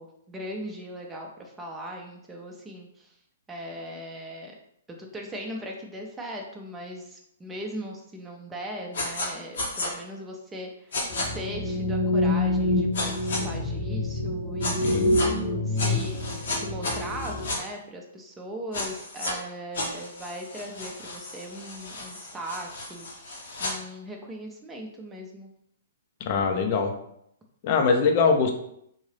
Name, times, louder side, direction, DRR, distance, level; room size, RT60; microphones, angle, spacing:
voice 1, 0.0-3.2 3.5-4.6 4.9-11.0 11.3-13.1 13.4-15.2 15.7-16.2 16.5-25.5, equal, 10° right, 0 dB, 0.6 m, -39 dB
sound 1, 8.9-9.3 9.6-9.9 10.9-11.3 12.9-13.4 14.6-15.3 15.8-17.6 18.7-19.3 19.7-23.7, left 2 dB, 70° left, 1.1 m, -33 dB
sound 2, 11.1-17.5, left 2 dB, 15° left, 1.0 m, -27 dB
voice 2, 14.8-15.2 26.2-26.9 27.6-28.5, left 5 dB, 45° left, 4 dB, 0.6 m, -22 dB
3.9 x 2.6 x 3.3 m, 0.74 s
figure-of-eight pair, 120°, 0 cm